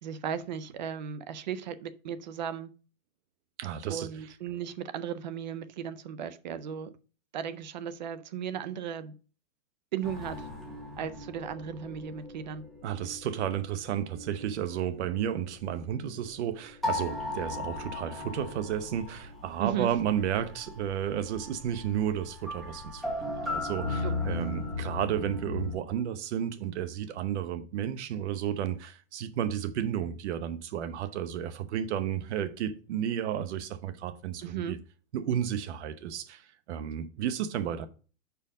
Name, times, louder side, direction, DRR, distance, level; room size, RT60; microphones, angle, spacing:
voice 1, 0.0-2.7 3.9-7.0 7.3-9.1 9.9-10.5 11.0-12.6 19.6-20.0 24.0-24.4 34.4-34.8, right 8 dB, 35° right, 0.4 m, -36 dB
voice 2, 3.6-4.1 12.8-34.8 35.1-36.4 36.7-37.9, right 9 dB, 55° right, 0.9 m, -32 dB
sound 1, 10.0-14.7 15.0-16.1 16.6-25.8, left 2 dB, ahead, 0.8 m, -37 dB
5.1 x 4.7 x 6.1 m
hypercardioid pair, 155°, 41 cm